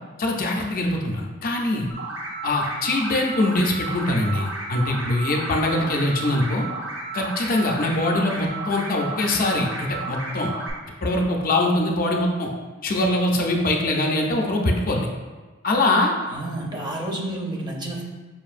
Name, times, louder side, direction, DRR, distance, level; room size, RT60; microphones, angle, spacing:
voice 1, 0.2-1.9 2.4-6.7 7.1-10.5 11.0-12.5 12.8-15.1 15.6-16.1, left 1 dB, 45° left, 1 dB, 0.5 m, -23 dB
sound 1, 1.9-10.7, right 2 dB, 90° right, 0.8 m, -33 dB
voice 2, 16.3-18.0, right 1 dB, 20° right, -1 dB, 0.5 m, -30 dB
5.5 x 2.5 x 2.4 m, 1.4 s
head